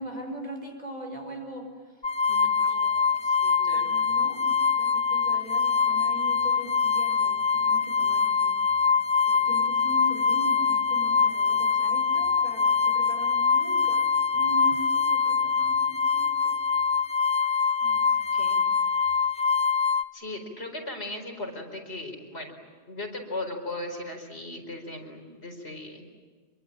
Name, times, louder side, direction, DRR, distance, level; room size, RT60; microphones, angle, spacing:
voice 1, 0.0-2.0 2.5-3.2 3.7-8.6 9.3-16.7 17.8-18.3, right 1 dB, 40° right, 2 dB, 4.8 m, -41 dB
sound 1, 2.0-20.0, left 5 dB, 25° left, 0.9 m, -24 dB
voice 2, 2.3-2.8 3.2-3.9 18.1-18.6 18.9-19.5 20.1-22.5 22.9-26.1, left 2 dB, 70° left, 2 dB, 4.9 m, -38 dB
26.5 x 23.5 x 8.9 m, 1.5 s
omnidirectional pair, 1.1 m